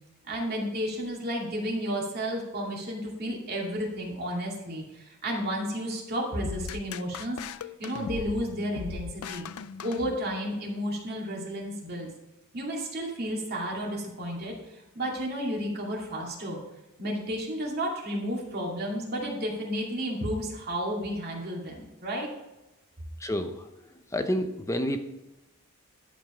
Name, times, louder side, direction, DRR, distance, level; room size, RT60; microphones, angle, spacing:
voice 1, 0.3-9.4 9.8-12.1 12.5-16.6 17.0-22.3, equal, 50° right, -2 dB, 2.4 m, -32 dB
sound 1, 6.5-10.6, left 7 dB, 85° left, 0.4 m, -39 dB
voice 2, 23.2-23.7 24.1-25.1, equal, 15° left, 7 dB, 0.7 m, -29 dB
11.0 x 5.2 x 5.0 m, 0.98 s
head